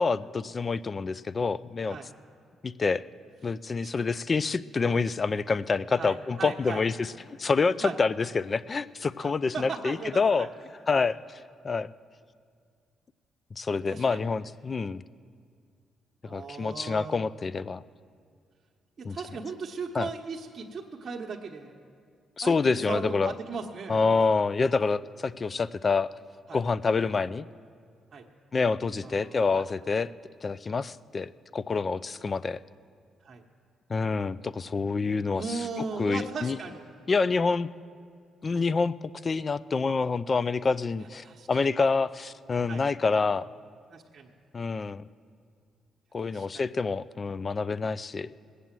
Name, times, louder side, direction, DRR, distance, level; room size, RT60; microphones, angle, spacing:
voice 1, 0.0-2.0 2.6-3.0 3.4-10.5 10.9-11.2 11.6-11.9 13.6-15.0 16.3-17.8 19.0-19.2 19.9-20.1 22.4-23.3 23.9-26.1 26.5-27.5 28.5-30.1 30.4-32.6 33.9-35.6 36.0-36.6 37.1-37.7 38.4-38.9 39.2-43.5 44.5-45.0 46.1-48.3, left 4 dB, 35° left, 18 dB, 0.4 m, -27 dB
voice 2, 5.9-6.8 7.8-8.0 9.2-10.5 10.9-11.1 13.7-14.3 16.2-17.2 19.0-21.8 22.4-24.1 26.5-26.6 28.1-28.3 29.0-29.7 30.7-30.8 33.2-33.4 35.3-36.8 41.2-41.6 42.6-42.8 43.9-44.3 46.2-46.7, right 4 dB, 40° right, 0 dB, 1.1 m, -38 dB
19.5 x 8.3 x 7.5 m, 2.2 s
cardioid pair, 90°, 0 cm